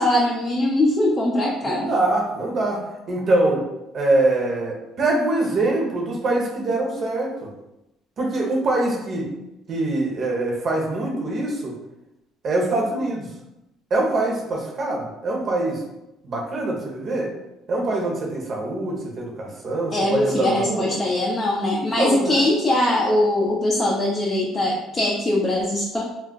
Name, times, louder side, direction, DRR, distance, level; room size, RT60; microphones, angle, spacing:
voice 1, 0.0-1.9 19.9-26.0, left 1 dB, 25° left, -3 dB, 0.4 m, -21 dB
voice 2, 1.6-3.6 3.9-7.5 8.2-9.3 9.7-11.7 12.4-13.3 13.9-15.8 16.2-17.3 17.7-20.9 22.0-22.4, right 2 dB, 50° right, -1 dB, 0.8 m, -24 dB
2.3 x 2.0 x 3.8 m, 0.92 s
cardioid pair, 95°, 0 cm